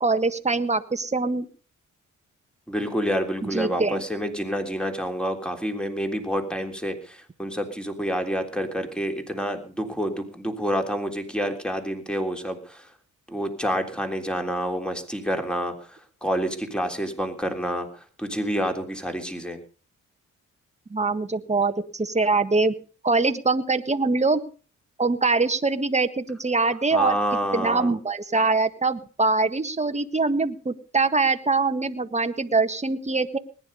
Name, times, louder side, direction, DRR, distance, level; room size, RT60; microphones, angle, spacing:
voice 1, 0.0-1.5 3.4-4.0 20.9-22.7 23.0-24.4 25.0-27.1 27.5-33.4, right 3 dB, 20° right, 9 dB, 1.6 m, -23 dB
voice 2, 2.7-12.9 13.3-19.6 26.9-27.9, equal, 5° left, 5 dB, 3.4 m, -28 dB
20.0 x 10.5 x 5.5 m, 0.40 s
cardioid pair, 75°, 32 cm